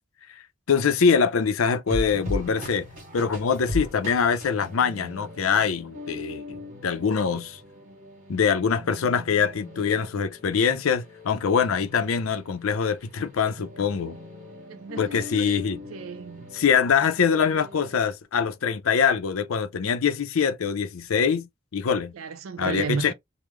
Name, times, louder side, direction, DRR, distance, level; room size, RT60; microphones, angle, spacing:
voice 1, 0.7-2.9 3.1-7.6 8.3-14.2 15.0-15.8 16.5-22.1 22.6-23.1, left 6 dB, 85° left, 0.5 m, -24 dB
sound 1, 1.9-18.0, left 1 dB, 40° right, 1.5 m, -39 dB
voice 2, 14.7-15.6 15.9-16.5 22.1-23.1, right 5 dB, 85° right, 0.4 m, -33 dB
3.1 x 2.0 x 3.4 m
head